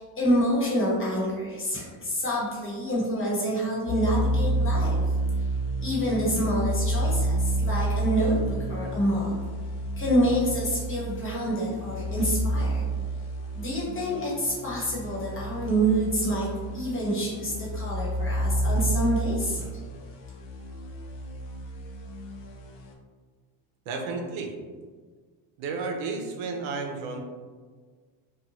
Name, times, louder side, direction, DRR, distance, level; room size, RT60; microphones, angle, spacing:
voice 1, 0.0-5.0 5.8-9.4 10.0-12.8 13.5-16.5 16.7-19.7, equal, 25° left, -6 dB, 1.2 m, -27 dB
sound 1, 3.9-22.9, right 1 dB, 80° left, 0.7 m, -30 dB
voice 2, 23.9-24.5 25.6-27.2, right 4 dB, 70° right, 2 dB, 0.7 m, -32 dB
2.6 x 2.3 x 2.9 m, 1.5 s
supercardioid pair, 95°, 49 cm